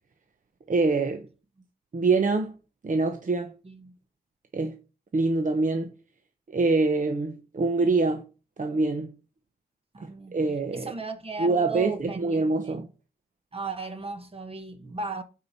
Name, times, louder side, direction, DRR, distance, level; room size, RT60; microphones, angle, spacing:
voice 1, 0.7-1.3 1.9-2.5 2.8-3.5 4.5-4.7 5.1-5.9 6.5-8.2 8.6-9.1 10.0-10.9 11.4-12.9, right 3 dB, 55° right, 0.9 m, -25 dB
voice 2, 9.9-10.4 10.7-12.8 13.5-15.2, right 3 dB, 40° right, 1.2 m, -36 dB
8.6 x 4.8 x 4.1 m
wide cardioid pair, 80°, 16 cm